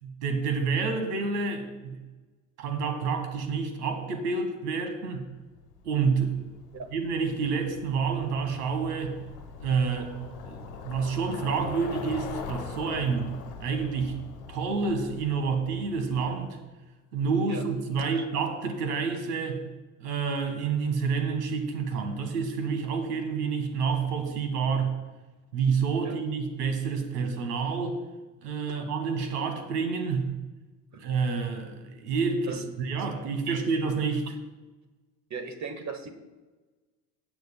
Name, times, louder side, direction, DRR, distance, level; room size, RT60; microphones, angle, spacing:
voice 1, 0.0-2.0 2.6-5.2 5.8-6.4 6.9-9.2 9.6-10.1 10.4-13.3 13.6-14.2 14.5-16.6 17.1-19.6 20.0-24.9 25.5-28.0 28.4-30.3 31.0-34.3, right 5 dB, 80° right, 7 dB, 1.7 m, -28 dB
Bicycle, 5.5-16.4, left 7 dB, 70° left, 1.3 m, -42 dB
voice 2, 35.3-36.1, right 5 dB, 35° right, 8 dB, 1.5 m, -37 dB
16.5 x 7.8 x 2.2 m, 1.2 s
hypercardioid pair, 75°, 46 cm